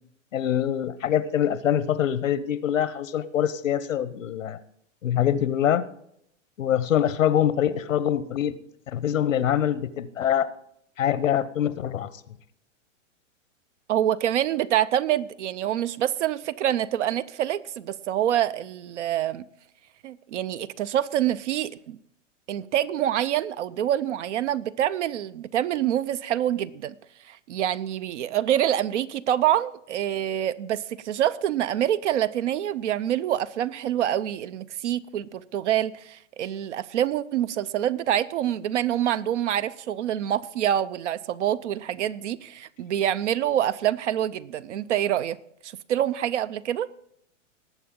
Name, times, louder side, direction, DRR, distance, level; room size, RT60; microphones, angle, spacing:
voice 1, 0.3-4.6 5.0-5.9 6.6-8.6 8.9-10.5 11.0-12.1, left 10 dB, 85° left, 1.0 m, -24 dB
voice 2, 13.9-19.4 20.0-22.0 22.5-26.9 27.2-45.4 45.6-46.9, right 11 dB, 70° right, 0.7 m, -26 dB
19.0 x 7.9 x 3.7 m
hypercardioid pair, 130°, 38 cm